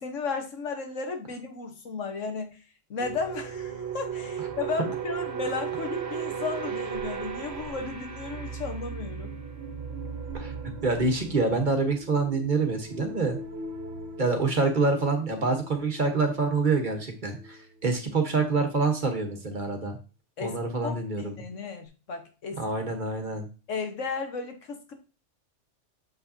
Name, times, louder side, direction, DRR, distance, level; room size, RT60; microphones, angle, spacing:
voice 1, 0.0-2.5 2.9-9.3 20.4-20.6 20.8-22.6 23.7-24.9, left 4 dB, 90° left, 5 dB, 1.5 m, -34 dB
sound 1, 3.0-17.6 17.9-18.2, right 6 dB, 60° right, 1.1 m, -37 dB
voice 2, 10.8-13.4 14.2-20.0 20.4-21.4 22.6-23.5, right 3 dB, 40° right, 4 dB, 1.2 m, -26 dB
6.8 x 5.3 x 2.7 m, 0.33 s
omnidirectional pair, 1.2 m